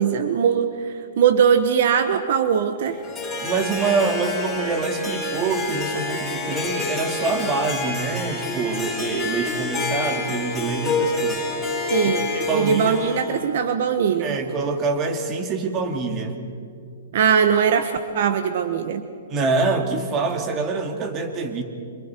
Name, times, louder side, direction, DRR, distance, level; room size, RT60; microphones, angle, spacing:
voice 1, 0.0-3.0 11.9-14.4 17.1-19.0, right 7 dB, 60° right, 9 dB, 1.3 m, -20 dB
Harp, 2.9-13.4, left 3 dB, 5° left, 7.3 m, -28 dB
voice 2, 3.4-11.4 12.3-13.0 14.2-16.4 19.3-21.6, right 4 dB, 25° right, 5 dB, 2.4 m, -25 dB
30.0 x 26.5 x 4.6 m, 2.4 s
hypercardioid pair, 150°, 0 cm